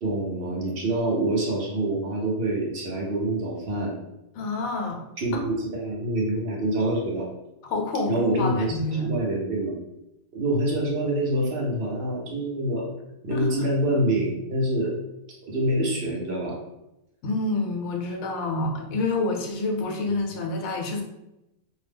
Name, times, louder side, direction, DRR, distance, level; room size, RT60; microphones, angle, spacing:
voice 1, 0.0-3.9 5.2-7.3 8.1-8.7 9.0-9.7 10.3-12.8 13.2-14.9 15.5-16.6, right 1 dB, 50° right, -3 dB, 0.8 m, -26 dB
voice 2, 4.3-5.0 7.6-9.1 13.3-13.5 17.2-21.0, left 2 dB, 80° left, 2 dB, 1.0 m, -28 dB
2.7 x 2.0 x 3.3 m, 0.89 s
omnidirectional pair, 1.5 m